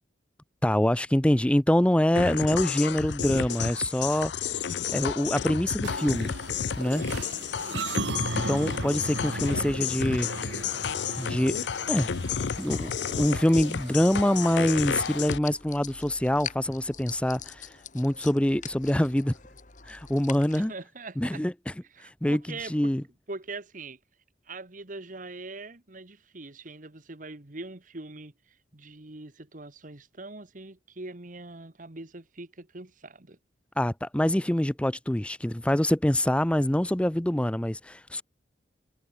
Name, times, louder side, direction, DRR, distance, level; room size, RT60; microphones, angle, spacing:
voice 1, 0.6-4.6 4.9-6.3 6.8-7.1 8.4-10.5 11.2-11.6 11.9-12.1 12.6-19.3 19.9-20.7 21.2-21.7 22.0-22.4 22.7-23.0 33.8-38.2, left 1 dB, 5° left, 0.5 m, -25 dB
sound 1, 2.2-15.4, left 7 dB, 80° left, 0.6 m, -31 dB
sound 2, 5.8-15.2, right 3 dB, 90° right, 1.6 m, -37 dB
voice 2, 7.0-8.0 20.5-21.4 21.9-22.9 23.3-24.0 24.4-33.4, right 3 dB, 50° right, 1.7 m, -42 dB
sound 3, 11.9-20.6, left 8 dB, 45° left, 3.0 m, -45 dB
head